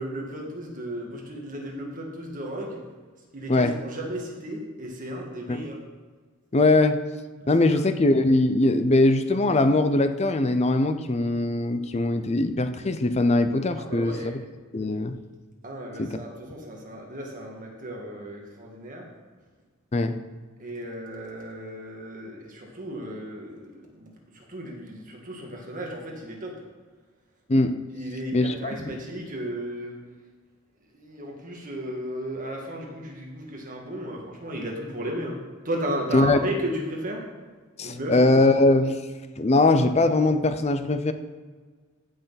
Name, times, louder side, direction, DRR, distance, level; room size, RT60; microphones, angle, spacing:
voice 1, 0.0-2.8 3.3-5.8 7.4-7.8 13.8-14.3 15.6-19.1 20.6-26.6 27.9-30.0 30.9-37.3 37.8-38.4, right 1 dB, 40° right, 0 dB, 1.9 m, -34 dB
voice 2, 6.5-7.0 7.5-14.3 14.7-15.2 16.0-16.1 19.9-20.2 27.5-27.7 28.3-28.8 36.1-36.4 37.8-39.0 39.4-41.1, left 2 dB, 30° left, 9 dB, 0.6 m, -21 dB
14.5 x 6.4 x 4.1 m, 1.5 s
head